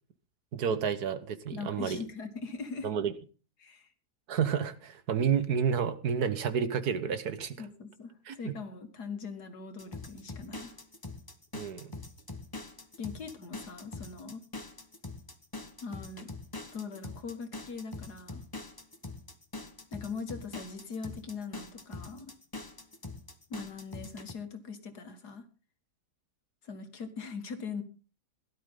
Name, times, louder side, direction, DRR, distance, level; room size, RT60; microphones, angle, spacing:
voice 1, 0.5-2.0 2.8-3.1 4.3-7.6 8.3-8.5 11.5-11.9, right 7 dB, 75° right, 12 dB, 1.7 m, -30 dB
voice 2, 1.5-2.9 3.6-3.9 7.6-10.8 13.0-14.4 15.8-16.3 16.7-18.4 19.9-22.3 23.5-25.5 26.6-27.8, left 5 dB, 80° left, 7 dB, 2.5 m, -41 dB
sound 1, 9.8-24.3, left 2 dB, 15° left, 1.1 m, -43 dB
17.0 x 12.0 x 3.8 m, 0.35 s
omnidirectional pair, 1.7 m